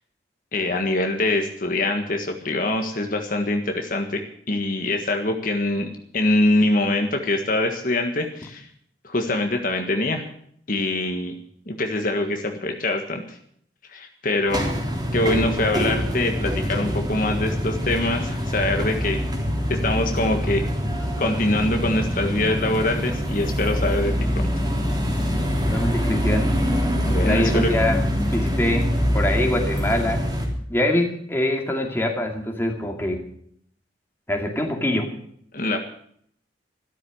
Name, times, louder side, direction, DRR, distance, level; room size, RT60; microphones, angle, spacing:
voice 1, 0.5-5.9 6.1-8.7 9.0-10.2 10.7-11.3 11.7-13.4 13.9-14.6 15.1-19.2 19.7-20.6 21.2-24.1 27.0-27.7 35.5-35.8, left 2 dB, 50° left, 4 dB, 1.7 m, -24 dB
sound 1, 14.5-30.5, equal, 25° right, 3.5 m, -24 dB
voice 2, 25.7-26.5 27.2-28.0 28.3-30.2 30.7-33.2 34.3-35.1, left 1 dB, 15° left, 2 dB, 2.5 m, -24 dB
13.5 x 13.0 x 6.4 m, 0.65 s
head